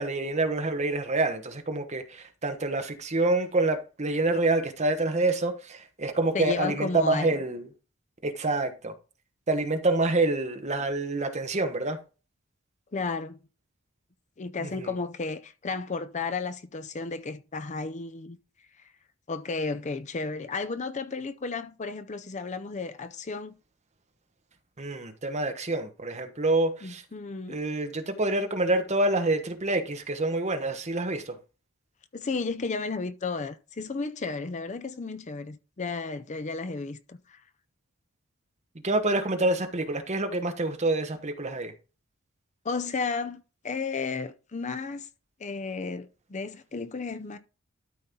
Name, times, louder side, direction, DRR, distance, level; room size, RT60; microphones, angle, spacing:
voice 1, 0.0-7.7 8.2-8.9 9.5-12.0 14.6-14.9 24.8-27.0 27.5-31.4 38.8-41.7, right 2 dB, 35° right, 1.2 m, -27 dB
voice 2, 6.3-7.4 12.9-13.4 14.4-18.4 18.8-18.9 19.3-23.6 26.8-27.6 32.1-37.4 42.6-45.1 45.4-47.4, left 4 dB, 35° left, 0.5 m, -33 dB
12.5 x 4.3 x 3.7 m
head